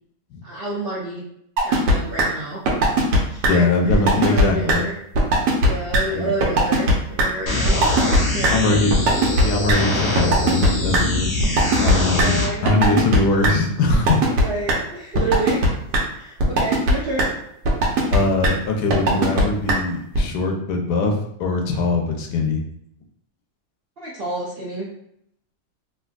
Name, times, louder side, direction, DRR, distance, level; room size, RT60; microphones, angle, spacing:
voice 1, 0.4-1.2 1.6-2.6 3.2-5.0 5.6-7.8 8.3-8.8 12.2-13.0 14.3-17.3 24.0-24.9, right 2 dB, 65° right, -7 dB, 0.6 m, -29 dB
sound 1, 1.6-1.9 2.2-2.3 2.7-3.2 3.4-3.5 3.9-4.4 4.7-4.8 5.1-5.7 5.9-6.0 6.4-6.9 7.2-7.3 7.6-8.2 8.4-8.5 8.9-9.7 10.2-11.0 11.4-12.2 12.7-13.2 13.4-13.5 13.9-14.4 14.7-14.8 15.1-15.7 15.9-16.0 16.4-16.9 17.2-17.3 17.6-18.2 18.4-18.5 18.9-19.4 19.7-19.8 20.1-20.2, right 1 dB, 85° right, 1.3 m, -17 dB
voice 2, 3.5-4.8 6.1-6.3 8.5-8.9 9.4-11.4 11.8-14.2 18.1-22.6, left 3 dB, 80° left, 3 dB, 1.1 m, -21 dB
sound 2, 7.5-12.5, left 2 dB, 50° left, 0.7 m, -23 dB
3.3 x 2.6 x 2.3 m, 0.73 s
omnidirectional pair, 1.8 m